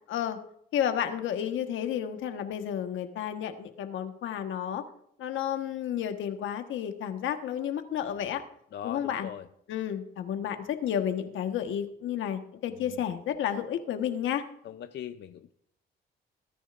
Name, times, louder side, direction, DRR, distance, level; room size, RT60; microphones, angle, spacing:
voice 1, 0.1-0.4 0.7-4.8 5.2-8.4 8.8-9.3 9.7-14.4, left 9 dB, 80° left, 7 dB, 1.4 m, -31 dB
voice 2, 8.7-9.5 12.8-13.2 14.6-15.5, left 10 dB, 60° left, 9 dB, 0.6 m, -41 dB
21.0 x 10.0 x 2.6 m, 0.70 s
cardioid pair, 90°, 20 cm